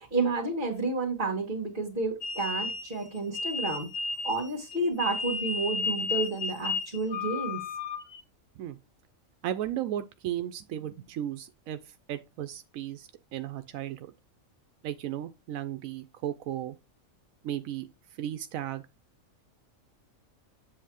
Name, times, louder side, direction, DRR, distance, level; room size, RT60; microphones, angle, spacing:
voice 1, 0.0-3.9 4.2-7.6, right 3 dB, 40° right, 1.9 m, -30 dB
sound 1, 2.2-8.2, left 4 dB, 50° left, 1.2 m, -33 dB
voice 2, 9.4-11.8 12.1-14.1 14.8-16.8 17.4-17.9 18.2-18.8, right 11 dB, 85° right, 1.0 m, -35 dB
7.7 x 3.1 x 6.2 m
omnidirectional pair, 1.4 m